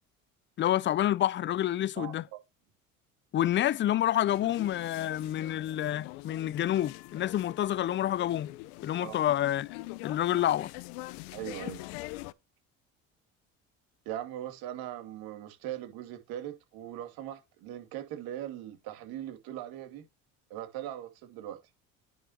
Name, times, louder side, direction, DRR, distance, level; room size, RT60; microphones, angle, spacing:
voice 1, 0.6-2.2 3.3-8.5 8.8-9.7 10.0-10.7, left 12 dB, 30° left, 0.4 m, -28 dB
sound 1, 4.3-12.3, left 20 dB, 75° left, 0.7 m, -44 dB
voice 2, 11.3-11.8 14.1-20.0 20.5-21.6, right 12 dB, 70° right, 2.5 m, -40 dB
10.0 x 6.2 x 2.8 m
hypercardioid pair, 70°, 38 cm